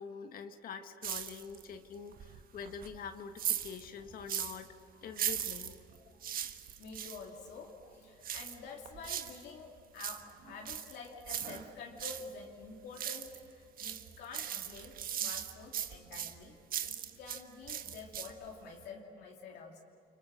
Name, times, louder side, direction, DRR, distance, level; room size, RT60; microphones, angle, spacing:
voice 1, 0.0-6.2 8.3-8.4, left 6 dB, 60° left, 7 dB, 1.6 m, -46 dB
sound 1, 1.0-1.8 2.1-4.7 5.1-7.2 8.2-9.4 9.8-12.3 12.6-13.5 13.8-17.4 17.7-18.5 18.8-18.9, right 9 dB, 60° right, 1.5 m, -39 dB
voice 2, 6.8-19.8, left 4 dB, 75° left, -1 dB, 2.9 m, -48 dB
29.5 x 25.5 x 6.4 m, 2.8 s
cardioid pair, 110°, 17 cm